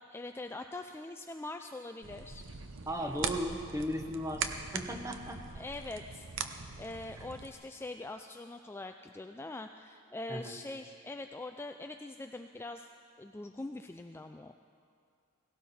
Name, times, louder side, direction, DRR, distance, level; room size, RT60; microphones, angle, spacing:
voice 1, 0.1-2.5 5.5-12.9 13.2-14.5, left 2 dB, 10° left, 5 dB, 0.3 m, -43 dB
sound 1, 2.0-7.5, right 6 dB, 60° right, 0.8 m, -41 dB
voice 2, 2.9-4.5 4.7-5.4 10.3-10.6, equal, 15° right, 4 dB, 1.0 m, -36 dB
17.5 x 17.5 x 4.3 m, 2.4 s
head